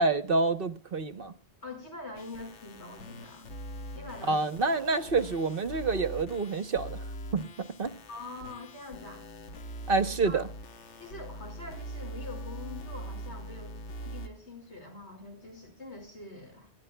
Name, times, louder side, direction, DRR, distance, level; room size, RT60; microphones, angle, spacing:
voice 1, 0.0-1.3 4.3-7.0 7.3-7.9 9.9-10.5, right 3 dB, 55° right, 1.1 m, -28 dB
voice 2, 1.6-3.5 4.0-4.7 8.1-9.2 10.2-10.4 11.0-16.7, left 2 dB, 70° left, 5.5 m, -44 dB
sound 1, 2.2-14.3, equal, 85° left, 1.4 m, -42 dB
28.5 x 12.0 x 2.2 m
omnidirectional pair, 1.2 m